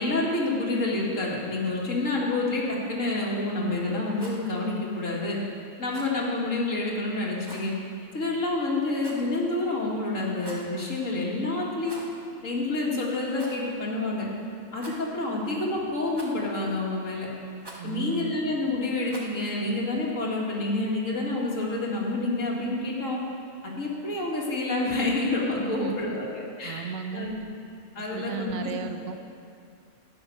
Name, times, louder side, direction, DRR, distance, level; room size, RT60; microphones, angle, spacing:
voice 1, 0.0-5.4 5.8-7.7 8.1-12.0 12.4-14.3 14.7-17.3 17.8-23.2 23.6-27.4 27.9-28.6, left 2 dB, 75° left, -4 dB, 2.5 m, -28 dB
Rattle, 4.1-4.4 5.9-6.2 7.4-7.7 9.0-9.4 10.3-10.7 11.8-12.2 12.5-12.6 13.3-13.6 14.7-15.2 16.1-16.6 17.6-17.9 19.1-19.4, right 1 dB, 20° right, 1.5 m, -45 dB
voice 2, 17.8-18.4 25.6-26.2 26.6-27.3 28.1-29.2, right 7 dB, 85° right, 6 dB, 1.3 m, -34 dB
12.0 x 9.5 x 6.4 m, 2.5 s
omnidirectional pair, 1.4 m